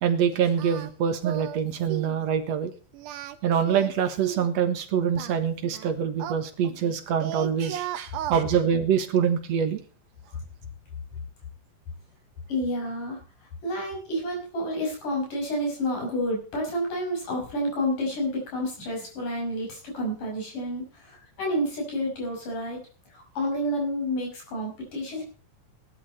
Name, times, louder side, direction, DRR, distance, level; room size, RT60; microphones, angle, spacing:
voice 1, 0.0-2.7 3.4-9.8, right 8 dB, 60° right, 8 dB, 2.4 m, -25 dB
Singing, 0.6-0.9 1.2-1.6 1.9-2.2 2.9-4.5 5.2-6.9 7.2-8.4, right 12 dB, 80° right, 2.5 m, -35 dB
voice 2, 12.5-13.2 13.6-22.8 23.1-25.2, equal, 85° left, 0 dB, 7.6 m, -29 dB
17.5 x 12.0 x 4.3 m, 0.39 s
omnidirectional pair, 3.6 m